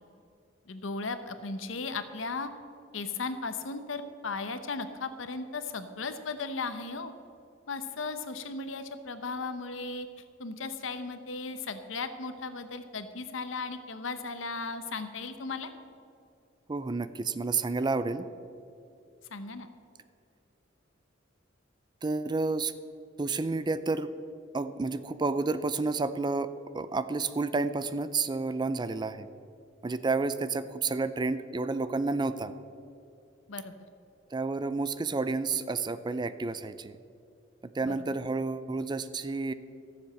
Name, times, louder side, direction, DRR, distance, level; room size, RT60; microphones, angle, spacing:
voice 1, 0.7-2.5 2.9-7.1 7.7-10.1 10.4-15.7 19.3-19.7 33.5-33.7 37.8-38.1, left 4 dB, 85° left, 10 dB, 0.9 m, -36 dB
voice 2, 16.7-18.3 22.0-22.7 23.2-24.1 24.5-29.3 29.8-32.5 34.3-37.0 37.7-39.5, right 3 dB, 25° right, 13 dB, 0.4 m, -30 dB
14.0 x 7.2 x 7.5 m, 2.5 s
head